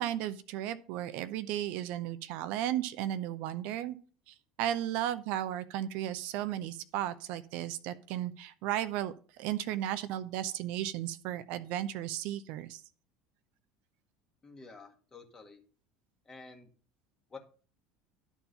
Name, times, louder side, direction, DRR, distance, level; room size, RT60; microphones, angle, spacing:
voice 1, 0.0-4.0 4.3-12.8, right 12 dB, 55° right, 13 dB, 0.5 m, -35 dB
voice 2, 14.4-15.6 16.2-16.7 17.3-17.4, left 4 dB, 20° left, 2 dB, 1.8 m, -50 dB
11.5 x 4.5 x 5.4 m, 0.41 s
figure-of-eight pair, 70°, 3 cm